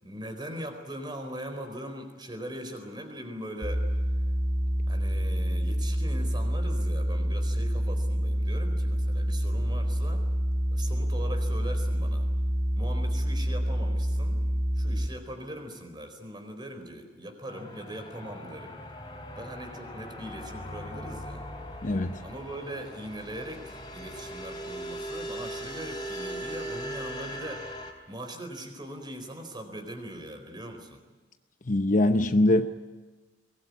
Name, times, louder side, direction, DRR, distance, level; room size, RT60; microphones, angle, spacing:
voice 1, 0.0-3.8 4.9-10.2 10.7-12.3 12.8-14.4 14.7-18.8 19.3-21.4 22.2-27.6 28.1-31.0, right 1 dB, 25° right, 4.3 m, -40 dB
sound 1, 3.6-15.1, equal, 40° right, 4.6 m, -27 dB
sound 2, 17.5-27.9, equal, 25° left, 3.9 m, -39 dB
voice 2, 21.8-22.2 31.7-32.7, left 1 dB, 45° left, 0.9 m, -22 dB
23.0 x 20.0 x 9.6 m
head